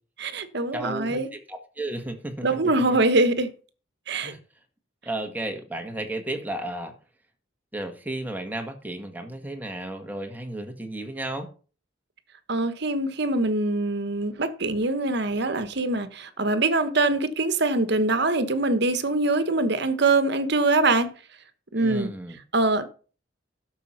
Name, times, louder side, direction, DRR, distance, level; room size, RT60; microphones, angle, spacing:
voice 1, 0.2-1.3 2.4-3.5 4.1-4.3 12.5-21.1 21.7-22.1 22.5-22.9, right 2 dB, 60° right, 1.2 m, -23 dB
voice 2, 0.7-3.0 4.2-4.4 5.0-6.9 7.7-11.5 21.8-22.4, right 1 dB, 10° right, 1.6 m, -33 dB
12.0 x 6.5 x 5.8 m
head